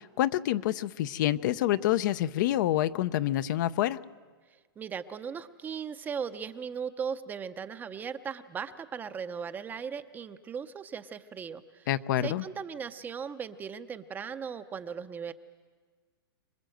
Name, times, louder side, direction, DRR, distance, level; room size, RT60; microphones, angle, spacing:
voice 1, 0.0-4.0 11.9-12.4, left 13 dB, 50° left, 14 dB, 0.6 m, -27 dB
voice 2, 4.8-11.9 12.2-15.3, right 6 dB, 15° right, 11 dB, 0.7 m, -38 dB
26.0 x 20.5 x 7.8 m, 1.5 s
hypercardioid pair, 150°, 13 cm